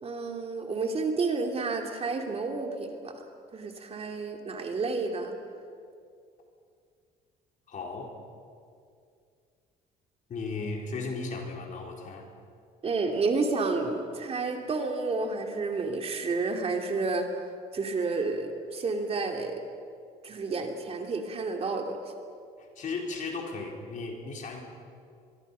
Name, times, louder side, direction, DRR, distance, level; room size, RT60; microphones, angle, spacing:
voice 1, 0.0-3.1 3.5-5.3 12.8-17.3 17.7-19.5 20.2-22.0, right 3 dB, 35° right, 3 dB, 2.6 m, -30 dB
voice 2, 7.7-8.1 10.3-12.3 22.6-24.6, left 3 dB, 50° left, 1 dB, 4.3 m, -36 dB
23.5 x 23.0 x 5.6 m, 2.3 s
cardioid pair, 110°, 17 cm